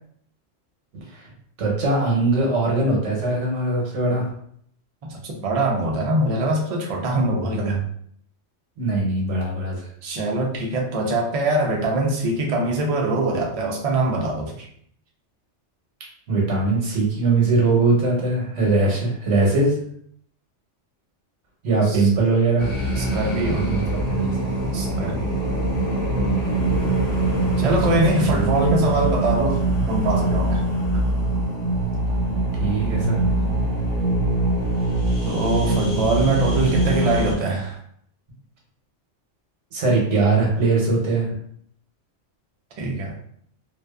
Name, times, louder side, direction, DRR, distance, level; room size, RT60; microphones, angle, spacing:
voice 1, 0.9-1.2 1.6-4.3 8.8-9.8 16.3-19.7 21.6-22.7 23.3-23.8 24.1-24.5 27.9-28.5 32.6-33.3 39.7-41.3, right 3 dB, 75° right, -2 dB, 1.1 m, -21 dB
voice 2, 5.0-7.8 10.0-14.7 21.9-22.1 23.0-23.7 24.7-25.4 27.6-30.6 35.2-37.8 42.8-43.1, right 2 dB, 60° right, 0 dB, 0.4 m, -23 dB
sound 1, 22.6-37.3, right 2 dB, 35° left, 0.9 m, -23 dB
2.5 x 2.2 x 2.2 m, 0.65 s
omnidirectional pair, 1.2 m